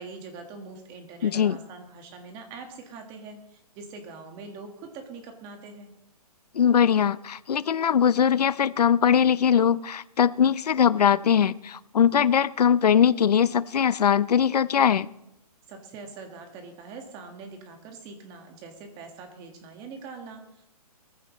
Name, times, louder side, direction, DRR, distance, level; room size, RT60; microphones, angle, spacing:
voice 1, 0.0-5.9 15.7-20.7, right 4 dB, 20° right, 5 dB, 1.7 m, -43 dB
voice 2, 1.2-1.6 6.5-15.1, left 8 dB, 80° left, 18 dB, 0.7 m, -21 dB
20.5 x 14.5 x 3.2 m, 0.86 s
hypercardioid pair, 165°, 20 cm